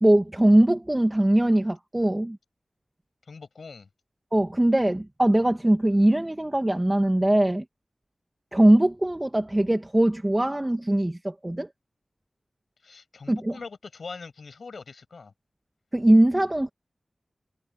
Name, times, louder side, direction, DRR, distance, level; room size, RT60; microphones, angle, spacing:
voice 1, 0.0-2.4 4.3-7.6 8.5-11.7 13.3-13.6 15.9-16.7, right 1 dB, 20° right, 2.1 m, -21 dB
voice 2, 3.3-3.9 12.8-15.3, left 4 dB, 85° left, 7.3 m, -42 dB
wide cardioid pair, 55°, 0 cm